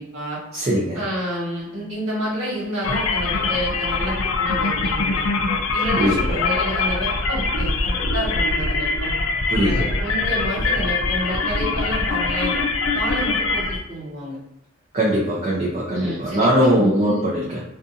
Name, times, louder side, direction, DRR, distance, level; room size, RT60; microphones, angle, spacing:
voice 1, 0.0-0.4 0.9-5.2 5.7-9.1 9.6-12.5 12.9-14.4 15.9-17.2, equal, 75° right, -7 dB, 1.4 m, -29 dB
voice 2, 0.5-1.0 6.0-6.4 9.5-9.9 14.9-17.6, equal, 30° right, -6 dB, 0.5 m, -21 dB
sound 1, 2.8-13.8, left 3 dB, 75° left, 0.4 m, -23 dB
2.5 x 2.4 x 2.5 m, 0.86 s
head